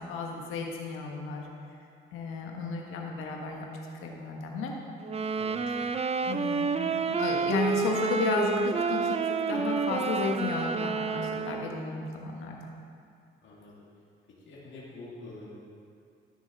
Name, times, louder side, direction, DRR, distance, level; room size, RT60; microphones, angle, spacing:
voice 1, 0.0-1.5 2.1-3.7 4.0-4.7 5.7-6.0 6.2-12.6, left 4 dB, 90° left, 0 dB, 1.5 m, -33 dB
sound 1, 5.0-11.9, right 5 dB, 30° right, 0.5 m, -29 dB
voice 2, 13.4-13.7 14.5-15.5, left 2 dB, 65° left, -5 dB, 2.5 m, -46 dB
14.0 x 6.6 x 4.1 m, 2.4 s
cardioid pair, 85°, 21 cm